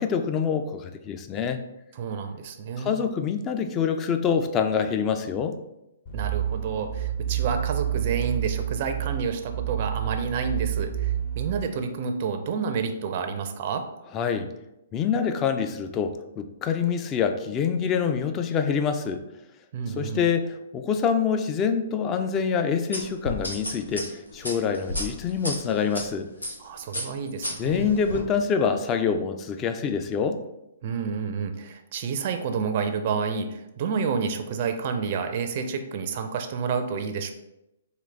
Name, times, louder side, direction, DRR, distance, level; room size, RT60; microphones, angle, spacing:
voice 1, 0.0-1.6 2.8-5.6 14.1-14.5 14.9-19.2 19.9-26.3 27.6-30.4, left 6 dB, 25° left, 7 dB, 0.3 m, -26 dB
voice 2, 2.0-3.0 6.1-13.9 19.7-20.2 26.6-27.9 30.8-37.3, right 5 dB, 45° right, 6 dB, 0.4 m, -29 dB
sound 1, 6.1-11.6, right 11 dB, 50° left, 1.1 m, -29 dB
sound 2, 22.9-26.0 26.4-26.6 26.9-28.2, left 1 dB, 90° left, 1.0 m, -32 dB
3.8 x 2.7 x 3.3 m, 0.89 s
figure-of-eight pair, 125°, 0 cm